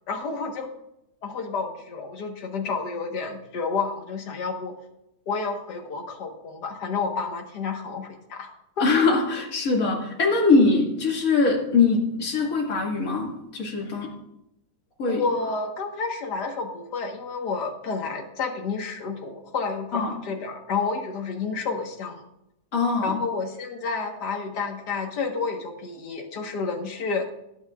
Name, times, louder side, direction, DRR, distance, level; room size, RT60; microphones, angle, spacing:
voice 1, 0.1-0.7 1.2-4.7 5.3-8.5 8.8-9.0 15.1-22.2 23.0-27.2, left 4 dB, 75° left, 2 dB, 2.0 m, -30 dB
voice 2, 8.8-14.1 15.0-15.2 19.9-20.1 22.7-23.2, left 3 dB, 55° left, -1 dB, 2.6 m, -22 dB
18.5 x 9.5 x 2.4 m, 0.84 s
omnidirectional pair, 1.8 m